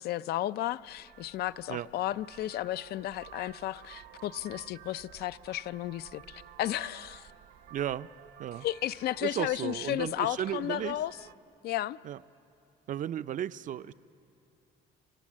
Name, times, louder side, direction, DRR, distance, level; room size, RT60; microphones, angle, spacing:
voice 1, 0.0-7.3 8.6-11.1 11.6-12.0, left 13 dB, 70° left, 0.5 m, -33 dB
Vehicle horn car horn honking, 0.7-11.4, right 11 dB, 75° right, 1.2 m, -53 dB
voice 2, 7.7-8.1 8.4-8.7 9.2-11.0 12.0-12.2 12.9-13.9, right 10 dB, 50° right, 0.5 m, -34 dB
30.0 x 24.0 x 7.5 m
cardioid pair, 110°, 17 cm